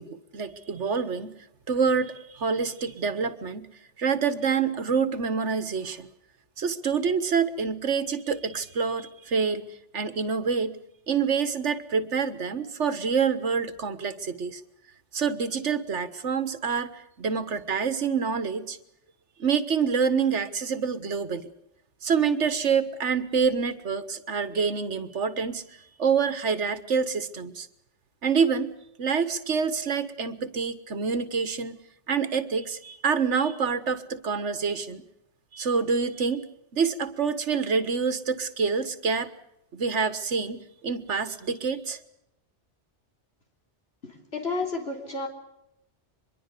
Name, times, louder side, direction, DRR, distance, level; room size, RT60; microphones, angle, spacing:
voice 1, 0.0-1.4 1.7-3.7 4.0-6.1 6.6-9.6 9.9-10.8 11.1-14.6 15.1-16.9 17.2-18.8 19.4-21.4 22.0-25.6 26.0-27.7 28.2-28.7 29.0-31.8 32.1-35.0 35.5-36.5 36.7-39.3 39.7-42.0, right 5 dB, 80° right, 13 dB, 1.7 m, -27 dB
voice 2, 44.0-45.3, left 3 dB, 60° left, 3 dB, 4.0 m, -31 dB
24.0 x 22.0 x 6.8 m, 0.83 s
omnidirectional pair, 1.2 m